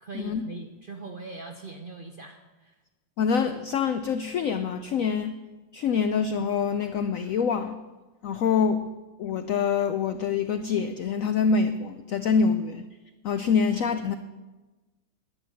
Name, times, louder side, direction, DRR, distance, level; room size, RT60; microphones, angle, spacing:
voice 1, 0.0-2.7, right 3 dB, 85° right, 4 dB, 0.4 m, -41 dB
voice 2, 3.2-5.3 5.7-7.8 8.2-8.9 9.2-12.8 13.2-14.2, left 6 dB, 85° left, 9 dB, 0.7 m, -25 dB
11.0 x 10.0 x 6.3 m, 1.2 s
omnidirectional pair, 2.1 m